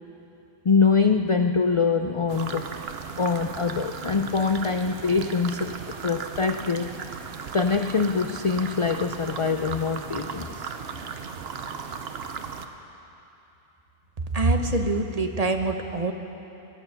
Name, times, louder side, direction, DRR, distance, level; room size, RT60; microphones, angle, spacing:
voice 1, 0.6-2.7 3.2-5.7 6.0-6.9 7.5-10.7, left 5 dB, 50° left, 6 dB, 0.4 m, -24 dB
sound 1, 2.3-12.7, right 6 dB, 70° right, 1.0 m, -36 dB
voice 2, 14.3-16.1, right 2 dB, 40° right, 5 dB, 0.9 m, -24 dB
21.0 x 11.5 x 5.8 m, 2.8 s
omnidirectional pair, 1.1 m